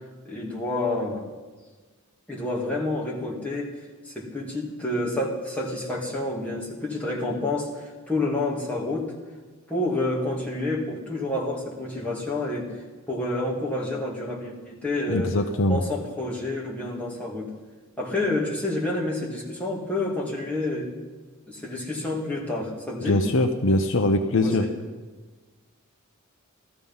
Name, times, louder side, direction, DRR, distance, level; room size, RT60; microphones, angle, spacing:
voice 1, 0.2-1.3 2.3-3.7 4.0-9.1 9.7-12.7 13.1-15.3 15.7-17.5 18.0-20.9 21.5-23.2 24.4-24.7, left 2 dB, 5° left, -5 dB, 2.5 m, -29 dB
voice 2, 15.1-15.8 23.0-24.6, left 2 dB, 60° left, 6 dB, 0.8 m, -22 dB
16.0 x 13.5 x 5.6 m, 1.3 s
head